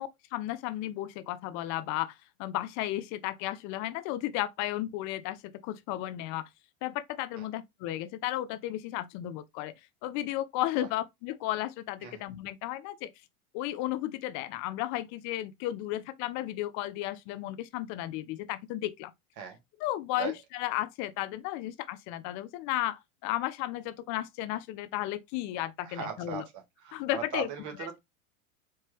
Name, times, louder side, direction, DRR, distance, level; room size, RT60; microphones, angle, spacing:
voice 1, 0.0-6.5 6.8-9.7 10.0-13.1 13.5-19.1 19.8-26.5 26.9-27.5, left 14 dB, 40° left, 0.6 m, -34 dB
voice 2, 25.8-28.0, right 8 dB, 40° right, 1.5 m, -39 dB
4.6 x 2.9 x 3.1 m
hypercardioid pair, 110°, 44 cm